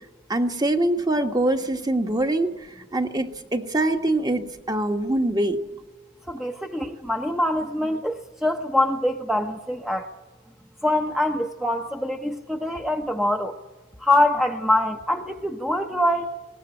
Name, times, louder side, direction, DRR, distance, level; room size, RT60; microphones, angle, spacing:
voice 1, 0.3-2.5 2.9-5.6, right 1 dB, 20° right, 5 dB, 1.4 m, -23 dB
voice 2, 6.3-10.1 10.8-13.6 14.0-16.3, left 1 dB, ahead, 3 dB, 0.9 m, -24 dB
22.0 x 18.5 x 9.9 m, 1.2 s
head